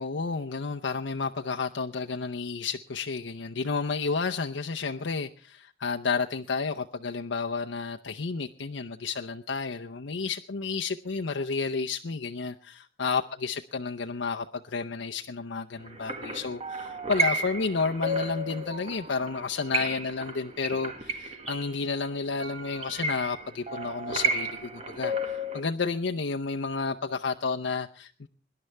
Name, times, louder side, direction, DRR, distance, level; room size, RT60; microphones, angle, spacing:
voice 1, 0.0-28.3, left 4 dB, 75° left, 0.7 m, -31 dB
sound 1, 15.8-25.6, right 2 dB, 35° right, 1.7 m, -33 dB
24.0 x 11.0 x 3.3 m
head